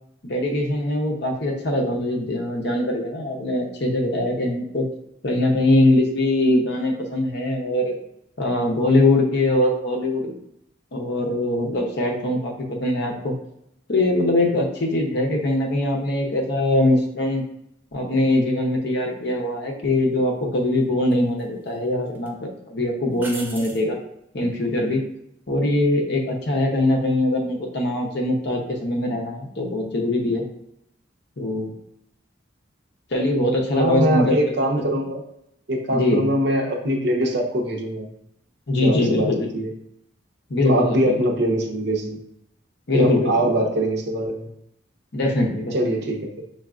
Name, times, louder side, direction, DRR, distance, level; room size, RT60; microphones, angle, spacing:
voice 1, 0.2-4.8 5.2-8.0 8.4-10.3 10.9-13.3 13.9-17.4 17.9-24.0 24.3-25.0 25.5-30.4 31.4-31.7 33.1-34.4 35.9-36.2 38.7-39.5 40.5-41.2 42.9-43.3 45.1-45.9, left 1 dB, 60° left, 1 dB, 0.7 m, -22 dB
sound 1, 19.8-20.0 21.1-21.8 22.1-22.3 23.2-23.9 27.0-27.4, right 2 dB, 10° right, 0.3 m, -39 dB
voice 2, 33.7-35.2 35.7-38.1 38.7-39.3 39.5-39.7 40.6-42.2 42.9-44.5 45.7-46.3, right 1 dB, 60° right, 0 dB, 0.7 m, -22 dB
6.0 x 2.3 x 2.4 m, 0.78 s
head